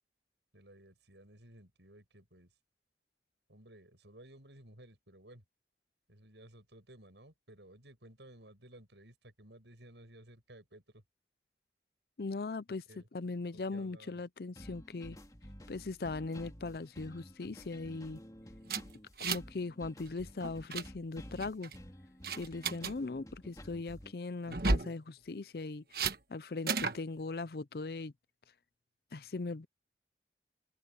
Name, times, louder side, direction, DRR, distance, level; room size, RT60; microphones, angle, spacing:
voice 1, 0.5-2.5 3.5-5.4 6.1-11.0 12.9-13.1 13.5-14.2, right 1 dB, 80° right, 8.0 m, -56 dB
voice 2, 12.2-12.8 13.1-15.2 15.7-18.2 19.2-21.7 22.4-25.8 26.3-28.1 29.1-29.7, left 3 dB, 60° left, 0.5 m, -39 dB
sound 1, 14.6-24.1, equal, 20° left, 2.6 m, -52 dB
sound 2, 18.7-19.6 19.8-20.1 20.4-20.9 21.4-21.8 22.2-22.9 24.5-24.9 25.9-26.2 26.7-27.0, right 3 dB, 55° right, 1.4 m, -33 dB
open air
head